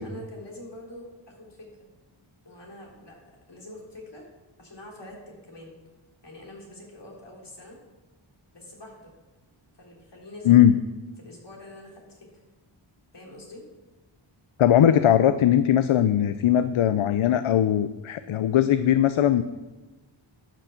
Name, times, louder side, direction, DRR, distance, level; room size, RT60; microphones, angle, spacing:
voice 1, 0.0-1.9 2.4-3.2 3.5-4.3 4.6-5.7 6.2-7.8 8.5-9.1 9.8-10.6 11.2-12.3 13.1-13.6, left 1 dB, 55° left, -2 dB, 3.4 m, -45 dB
voice 2, 14.6-19.4, left 10 dB, 75° left, 12 dB, 0.6 m, -19 dB
11.5 x 6.2 x 7.1 m, 1.2 s
wide cardioid pair, 75°, 50 cm